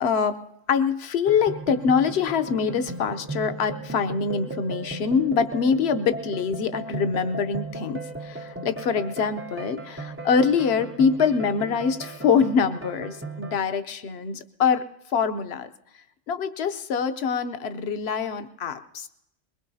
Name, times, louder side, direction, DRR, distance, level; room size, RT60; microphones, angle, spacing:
voice 1, 0.0-0.4 0.7-14.8 15.1-15.7 16.3-19.1, left 6 dB, 60° left, 10 dB, 0.9 m, -24 dB
sound 1, 1.2-13.6, right 3 dB, 20° right, 0.3 m, -37 dB
22.0 x 20.5 x 2.7 m, 0.83 s
omnidirectional pair, 1.3 m